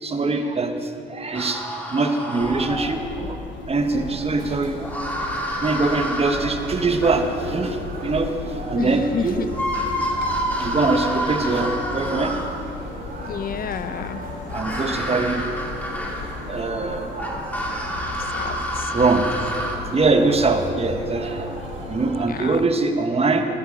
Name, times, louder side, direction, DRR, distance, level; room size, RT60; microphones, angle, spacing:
voice 1, 0.0-3.4 3.7-4.8 5.6-8.3 8.7-9.5 10.6-12.3 14.5-15.5 16.4-17.2 18.2-18.3 18.9-19.3 19.9-23.5, right 3 dB, 30° right, 6 dB, 1.4 m, -23 dB
sound 1, 1.3-3.2 4.8-7.8 9.1-9.2 9.5-12.7 14.5-16.6 17.2-19.8, equal, 10° left, 2.4 m, -29 dB
sound 2, 2.4-22.1, left 5 dB, 70° left, 1.0 m, -36 dB
sound 3, 3.7-22.6, right 2 dB, 50° right, 4.0 m, -37 dB
voice 2, 8.7-9.5 13.2-14.2 18.3-18.9 22.3-22.6, left 7 dB, 45° left, 13 dB, 0.7 m, -30 dB
13.5 x 12.5 x 5.0 m, 2.7 s
supercardioid pair, 70°, 20 cm